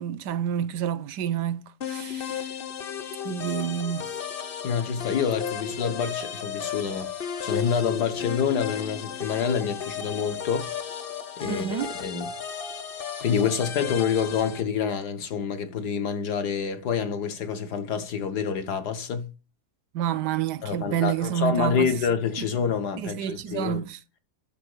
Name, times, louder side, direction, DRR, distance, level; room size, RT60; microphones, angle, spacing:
voice 1, 0.0-2.5 3.2-4.1 11.5-11.9 19.9-21.9 23.0-24.0, right 10 dB, 90° right, 1.3 m, -29 dB
sound 1, 1.8-14.6, left 8 dB, 40° left, 0.9 m, -34 dB
voice 2, 4.6-7.1 7.4-10.7 11.4-11.7 11.9-12.3 13.2-19.3 20.6-23.8, left 7 dB, 75° left, 1.9 m, -27 dB
12.0 x 4.0 x 6.6 m
omnidirectional pair, 1.8 m